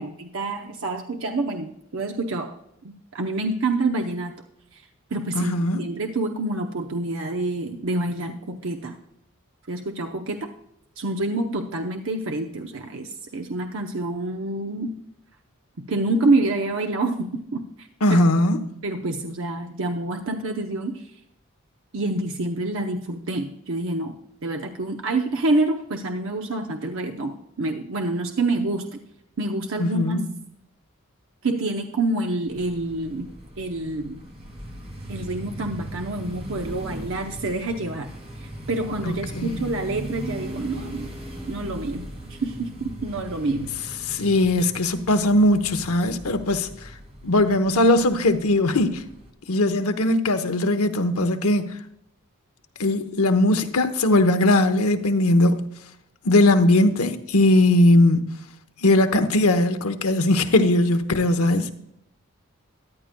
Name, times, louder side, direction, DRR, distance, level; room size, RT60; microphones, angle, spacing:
voice 1, 0.0-2.5 2.8-4.4 4.7-4.8 5.1-9.0 9.7-10.5 11.0-14.9 15.8-18.2 18.8-21.1 21.9-29.0 29.4-30.2 31.4-33.3 33.6-34.2 35.1-38.1 38.4-41.1 41.5-43.7, right 2 dB, 65° right, 0.7 m, -27 dB
voice 2, 5.4-5.8 18.0-18.7 29.8-30.3 39.0-39.5 44.1-46.7 47.2-49.0 49.5-51.7 52.8-55.6 56.2-58.2 58.8-61.7, left 1 dB, 85° left, 0.9 m, -19 dB
sound 1, 32.5-49.3, equal, 30° right, 2.0 m, -38 dB
14.0 x 10.5 x 2.2 m
head